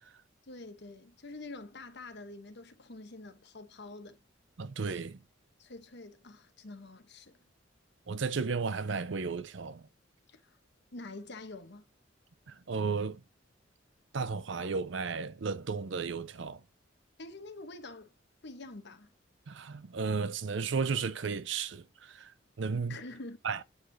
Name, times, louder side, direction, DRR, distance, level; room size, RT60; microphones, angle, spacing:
voice 1, 0.5-4.2 5.6-7.4 10.3-10.6 10.9-11.9 17.2-18.1 18.4-19.1 22.9-23.4, left 2 dB, 60° left, 1.0 m, -46 dB
voice 2, 4.6-5.2 8.1-9.9 12.5-13.2 14.1-16.6 19.5-23.0 23.4-23.6, right 5 dB, 65° right, 0.6 m, -34 dB
8.1 x 4.9 x 2.7 m
head